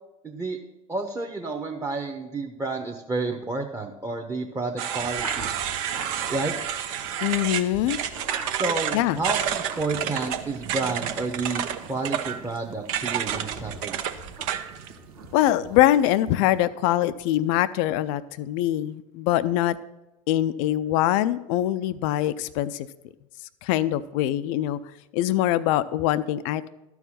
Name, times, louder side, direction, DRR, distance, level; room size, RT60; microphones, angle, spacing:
voice 1, 0.2-0.6 0.9-5.5 6.3-6.5 8.4-11.6 11.9-14.0, right 3 dB, 15° right, 2 dB, 1.0 m, -30 dB
sound 1, 4.8-14.9, right 9 dB, 65° right, 0.8 m, -30 dB
sound 2, 4.9-16.6, right 4 dB, 85° right, 1.6 m, -42 dB
voice 2, 7.2-8.0 8.9-9.2 15.3-19.8 20.3-22.9 23.6-24.8 25.1-26.7, left 13 dB, 60° left, 13 dB, 0.5 m, -23 dB
12.5 x 4.7 x 7.3 m, 0.97 s
hypercardioid pair, 85°, 19 cm